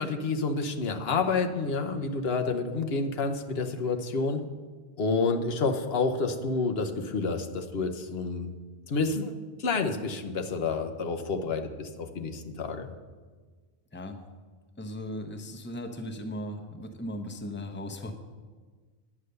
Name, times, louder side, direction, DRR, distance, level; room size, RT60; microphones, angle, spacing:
voice 1, 0.0-4.4 5.0-8.5 8.9-9.3 9.6-12.9, left 4 dB, 75° left, 5 dB, 1.1 m, -29 dB
voice 2, 14.8-18.1, left 1 dB, 10° left, 5 dB, 0.8 m, -37 dB
9.8 x 8.2 x 6.6 m, 1.4 s
omnidirectional pair, 1.0 m